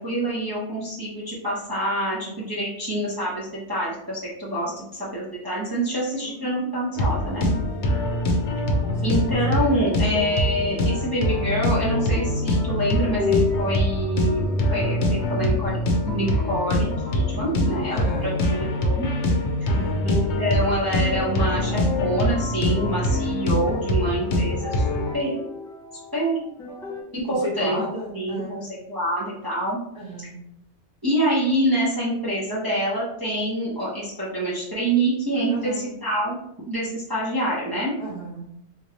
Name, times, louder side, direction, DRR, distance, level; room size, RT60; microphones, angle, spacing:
voice 1, 0.0-7.5 9.0-15.8 16.1-19.1 20.0-25.4 26.1-26.4 27.1-27.8 28.1-28.6 28.9-29.8 31.0-36.4 36.6-37.9, right 1 dB, 20° right, -8 dB, 0.9 m, -26 dB
voice 2, 6.2-6.7 7.5-7.7 8.8-9.0 17.9-18.5 19.7-20.1 27.2-28.7 29.9-30.4 35.5-35.9 38.0-38.5, equal, 35° left, -9 dB, 1.1 m, -34 dB
sound 1, 7.0-25.1, left 1 dB, 75° left, 0.9 m, -24 dB
sound 2, 8.6-27.0, left 4 dB, 5° left, 0.4 m, -34 dB
3.7 x 2.6 x 2.9 m, 0.73 s
omnidirectional pair, 1.2 m